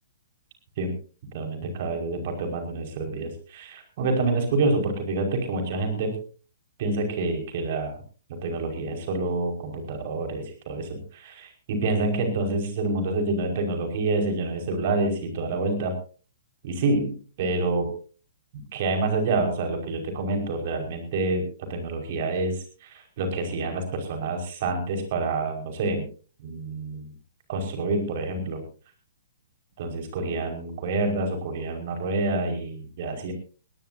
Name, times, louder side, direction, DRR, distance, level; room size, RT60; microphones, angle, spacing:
voice 1, 1.3-6.2 6.8-8.0 8.3-15.9 16.6-17.9 18.5-26.1 26.4-27.1 27.5-28.6 29.8-33.3, right 2 dB, 45° right, 4 dB, 5.5 m, -27 dB
20.5 x 18.5 x 2.8 m, 0.39 s
figure-of-eight pair, 120°, 0 cm